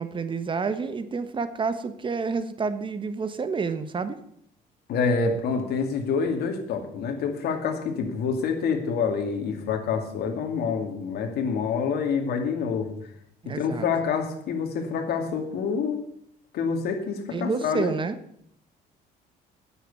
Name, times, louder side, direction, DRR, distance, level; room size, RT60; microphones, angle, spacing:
voice 1, 0.0-4.2 13.4-13.9 17.3-18.2, right 5 dB, 30° right, 11 dB, 1.2 m, -29 dB
voice 2, 4.9-12.9 13.4-16.0 16.5-17.9, left 5 dB, 70° left, 5 dB, 2.5 m, -27 dB
9.8 x 8.1 x 8.5 m, 0.70 s
cardioid pair, 110°, 17 cm